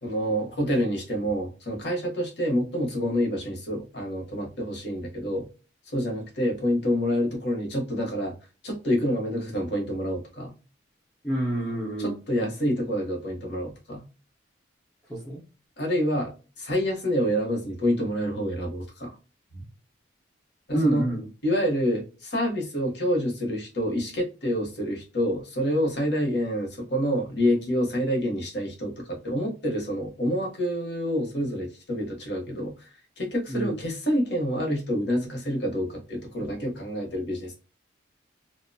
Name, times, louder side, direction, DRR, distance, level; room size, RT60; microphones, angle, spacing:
voice 1, 0.0-5.4 5.9-8.3 8.6-10.5 12.0-14.0 15.8-16.3 16.6-19.1 19.5-19.6 20.7-21.1 21.4-32.7 33.2-37.5, equal, 60° left, 0 dB, 1.0 m, -27 dB
voice 2, 11.2-12.2 15.1-15.4 20.7-21.3 33.5-33.8, right 1 dB, 5° left, -5 dB, 0.6 m, -28 dB
2.6 x 2.1 x 2.6 m, 0.32 s
head